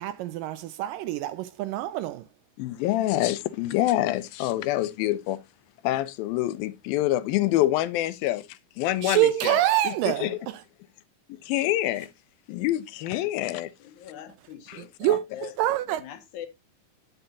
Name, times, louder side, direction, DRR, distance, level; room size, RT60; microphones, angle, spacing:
voice 1, 0.0-2.3 9.0-10.6 14.7-16.0, right 14 dB, 80° right, 2.1 m, -26 dB
voice 2, 2.6-5.4 5.8-9.6 10.2-10.4 11.4-12.1 12.5-13.7 14.7-14.8, left 15 dB, 85° left, 2.5 m, -26 dB
voice 3, 13.8-15.5 16.0-16.5, left 10 dB, 65° left, 2.2 m, -42 dB
9.8 x 7.9 x 2.8 m
omnidirectional pair, 4.1 m